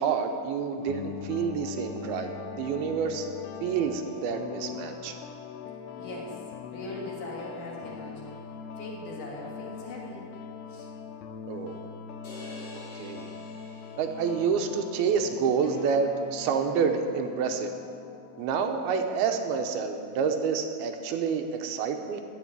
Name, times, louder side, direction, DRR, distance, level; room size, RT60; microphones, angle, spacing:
voice 1, 0.0-2.3 2.6-3.3 3.6-5.2 11.5-11.8 12.9-13.3 14.0-17.7 18.4-22.2, right 6 dB, 85° right, 5 dB, 2.7 m, -28 dB
sound 1, 0.8-19.7, left 7 dB, 80° left, 2.7 m, -42 dB
voice 2, 6.0-6.4 6.7-8.3 8.8-10.3 10.7-10.9, left 1 dB, 60° left, -2 dB, 3.0 m, -40 dB
sound 2, 12.2-14.6, left 1 dB, 40° left, 4.0 m, -47 dB
14.5 x 5.6 x 9.7 m, 2.4 s
omnidirectional pair, 4.5 m